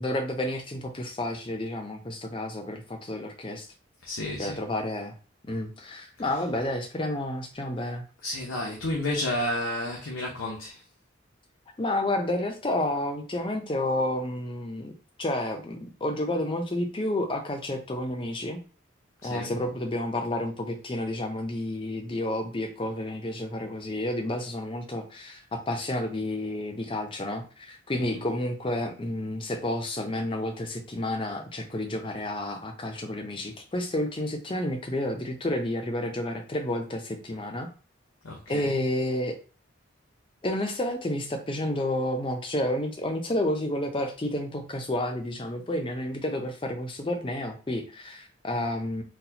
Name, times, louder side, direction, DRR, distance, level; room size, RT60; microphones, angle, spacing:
voice 1, 0.0-3.7 4.4-5.2 5.5-8.0 11.8-14.9 15.2-18.6 19.2-37.7 38.5-39.3 40.4-49.0, left 1 dB, 25° left, 4 dB, 0.5 m, -30 dB
voice 2, 4.0-4.6 6.2-6.4 8.2-10.8 19.2-19.6 28.0-28.2 38.2-38.8, left 1 dB, 90° left, -1 dB, 0.8 m, -32 dB
4.1 x 2.2 x 2.8 m, 0.36 s
head